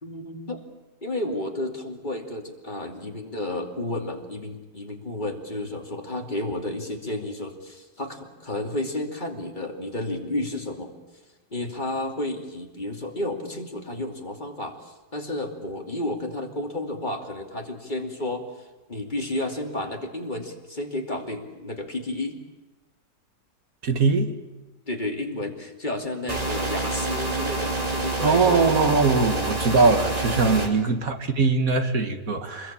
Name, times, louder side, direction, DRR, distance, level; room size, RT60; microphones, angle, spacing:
voice 1, 0.0-0.6 1.0-10.9 11.5-22.4 24.9-28.7 30.4-30.7, left 1 dB, 25° left, 3 dB, 2.8 m, -32 dB
voice 2, 23.8-24.4 28.2-32.7, right 4 dB, 55° right, 7 dB, 2.2 m, -21 dB
sound 1, 26.3-30.7, right 2 dB, 20° right, 3.2 m, -27 dB
26.5 x 21.5 x 8.8 m, 1.1 s
omnidirectional pair, 1.8 m